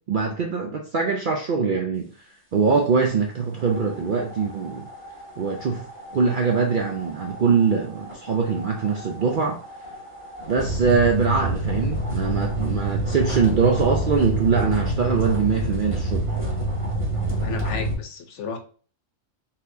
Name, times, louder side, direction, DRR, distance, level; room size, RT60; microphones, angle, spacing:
voice 1, 0.1-2.1 2.5-4.9 5.4-5.8 6.1-9.6 10.5-16.2, right 5 dB, 60° right, 0.5 m, -22 dB
sound 1, 3.6-17.9, right 1 dB, 10° right, 1.6 m, -28 dB
voice 2, 17.4-18.6, left 5 dB, 65° left, 1.0 m, -33 dB
4.2 x 3.6 x 2.6 m
omnidirectional pair, 1.4 m